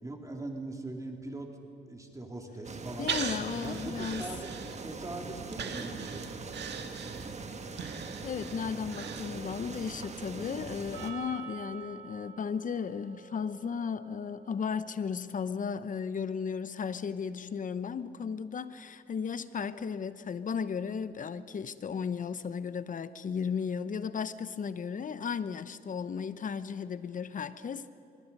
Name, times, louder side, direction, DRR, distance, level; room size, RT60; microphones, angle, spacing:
voice 1, 0.0-1.5 1.9-3.1 3.6-4.5 4.8-6.5, right 2 dB, 15° right, 2.9 m, -41 dB
sound 1, 2.6-11.1, right 4 dB, 35° right, 1.7 m, -42 dB
voice 2, 3.0-4.3 7.8-27.9, left 6 dB, 40° left, 0.9 m, -35 dB
Breathing, 3.1-5.1 5.5-9.7 10.1-10.2, right 6 dB, 60° right, 1.8 m, -39 dB
Percussion, 10.9-15.5, right 8 dB, 90° right, 3.3 m, -49 dB
24.0 x 22.0 x 5.5 m
cardioid pair, 90°, 20 cm